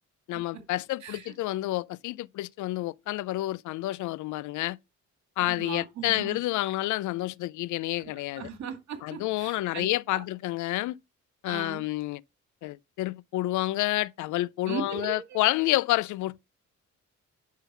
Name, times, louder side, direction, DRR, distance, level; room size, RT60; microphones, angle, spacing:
voice 1, 0.3-4.8 5.4-8.5 9.0-11.0 11.4-12.2 12.6-16.4, left 17 dB, 80° left, 0.5 m, -29 dB
voice 2, 1.0-1.3 5.4-6.4 8.0-8.1 8.4-9.9 10.1-10.2 11.5-11.8 14.6-15.4, right 6 dB, 65° right, 2.2 m, -38 dB
10.5 x 3.8 x 5.6 m
cardioid pair, 90°, 30 cm